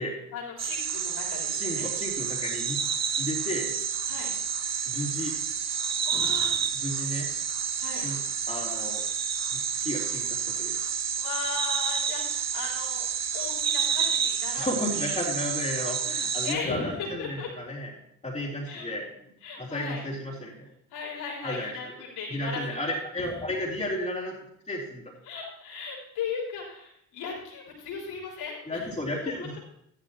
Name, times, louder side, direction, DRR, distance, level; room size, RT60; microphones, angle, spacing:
voice 1, 0.3-1.9 4.1-4.3 6.1-6.6 7.8-8.1 11.2-13.1 13.3-14.7 14.9-15.2 16.4-17.5 18.7-18.9 19.4-20.0 20.9-23.0 25.2-28.8, left 5 dB, 65° left, -4 dB, 3.8 m, -37 dB
sound 1, 0.6-16.6, right 7 dB, 40° right, 1.2 m, -29 dB
voice 2, 1.5-2.8 3.2-3.7 4.9-5.3 6.2-6.3 6.7-7.3 8.0-8.2 8.5-9.0 9.5-10.7 14.6-17.9 18.2-19.1 19.6-20.7 21.4-21.9 22.3-24.4 24.7-25.1 28.7-29.6, left 1 dB, 15° left, -5 dB, 3.3 m, -33 dB
14.0 x 11.5 x 2.9 m, 0.73 s
figure-of-eight pair, 45°, 42 cm